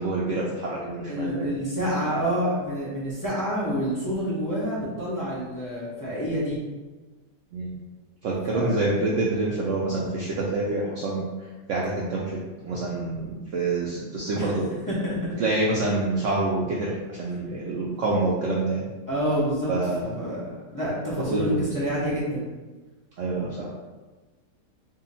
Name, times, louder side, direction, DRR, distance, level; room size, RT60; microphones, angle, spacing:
voice 1, 0.0-1.5 7.5-7.7 8.2-14.7 15.4-18.9 19.7-20.1 21.3-21.6 23.2-23.7, right 2 dB, 75° right, -4 dB, 0.7 m, -27 dB
voice 2, 1.1-6.6 8.5-8.9 14.4-14.5 14.9-15.2 19.1-19.7 20.0-20.4 20.7-22.5, equal, 20° left, -8 dB, 0.6 m, -28 dB
2.8 x 2.7 x 4.0 m, 1.2 s
omnidirectional pair, 1.9 m